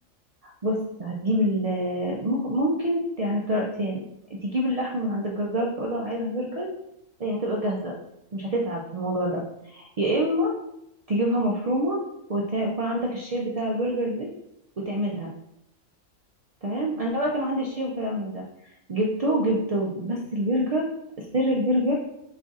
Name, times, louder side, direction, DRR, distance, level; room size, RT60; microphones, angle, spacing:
voice 1, 0.4-4.0 4.4-6.7 7.2-7.9 8.3-10.5 11.1-12.0 12.3-14.3 14.9-15.3 16.6-20.9 21.2-22.0, equal, 70° right, -2 dB, 0.3 m, -26 dB
4.3 x 2.4 x 3.9 m, 0.82 s
omnidirectional pair, 1.4 m